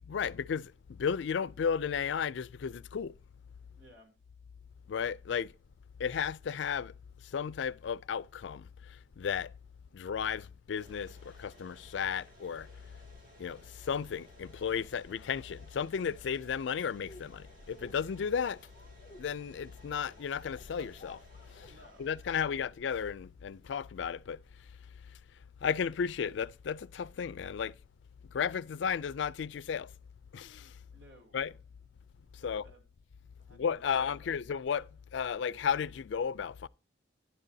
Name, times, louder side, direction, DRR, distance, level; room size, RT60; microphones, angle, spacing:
voice 1, 0.1-3.1 4.9-5.5 6.0-6.9 7.3-8.7 9.2-9.5 9.9-11.1 11.4-12.7 13.4-13.6 13.9-18.6 19.2-21.2 21.6-21.7 22.0-24.4 25.6-27.7 28.3-29.9 30.3-30.7 31.3-31.5 32.4-32.7 33.5-34.9 35.1-36.7, left 7 dB, 70° left, 0.4 m, -34 dB
voice 2, 3.7-4.1 21.7-22.6 30.9-31.4 32.3-32.8 33.4-34.6, equal, 75° right, 2.9 m, -59 dB
sound 1, 10.7-22.6, right 1 dB, 50° right, 3.0 m, -59 dB
sound 2, 17.0-23.1, left 2 dB, 40° left, 0.7 m, -55 dB
10.5 x 8.9 x 2.7 m
head